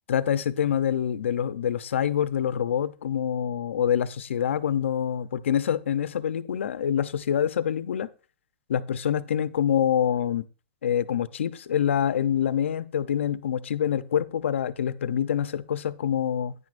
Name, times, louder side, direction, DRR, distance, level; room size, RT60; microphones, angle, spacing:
voice 1, 0.1-8.1 8.7-10.4 10.8-16.5, left 9 dB, 90° left, 0.6 m, -26 dB
9.6 x 9.5 x 2.5 m
hypercardioid pair, 180°, 6 cm